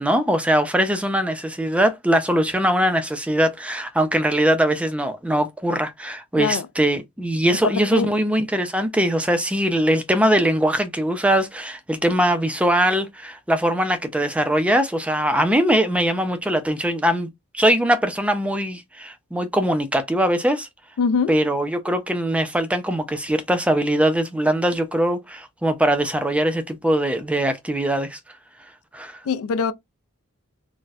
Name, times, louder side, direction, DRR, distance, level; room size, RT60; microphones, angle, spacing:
voice 1, 0.0-17.3 17.5-20.7 21.3-28.2 28.9-29.2, right 1 dB, 5° right, 0.4 m, -21 dB
voice 2, 6.4-6.7 7.5-8.1 21.0-21.4 29.3-29.7, left 5 dB, 70° left, 0.4 m, -23 dB
4.0 x 2.1 x 2.3 m
head